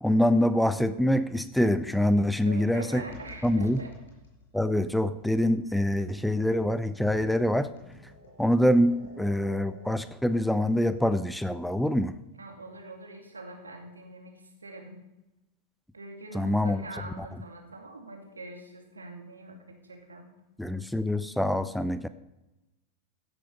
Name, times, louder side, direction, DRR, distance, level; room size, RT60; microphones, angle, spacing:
voice 1, 0.0-3.0 3.4-3.8 4.5-7.7 8.4-12.1 16.3-16.8 20.6-22.1, left 1 dB, ahead, 13 dB, 0.5 m, -25 dB
voice 2, 2.4-4.0 12.3-15.0 15.9-19.6 19.8-20.3, right 2 dB, 75° right, 3 dB, 2.4 m, -44 dB
sound 1, 3.0-10.0, left 4 dB, 60° left, 5.3 m, -51 dB
16.0 x 7.8 x 5.4 m, 0.98 s
figure-of-eight pair, 90°, 0 cm